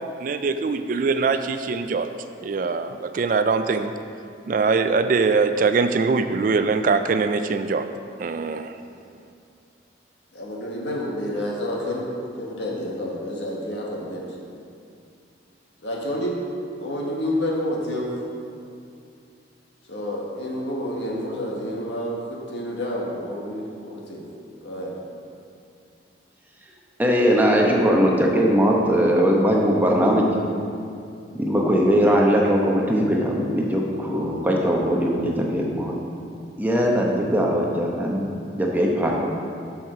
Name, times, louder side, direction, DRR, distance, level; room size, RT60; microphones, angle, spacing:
voice 1, 0.0-2.1 2.4-3.9 4.5-7.8 8.2-8.7, right 4 dB, 45° right, 9 dB, 0.3 m, -22 dB
voice 2, 10.3-12.1 12.3-14.4 15.8-16.4 16.8-18.1 19.9-24.3 24.6-24.9, left 1 dB, 70° left, -3 dB, 1.5 m, -29 dB
voice 3, 27.0-30.2 31.3-35.9 36.6-39.1, equal, 10° right, -2 dB, 0.9 m, -20 dB
7.6 x 5.7 x 5.8 m, 2.4 s
head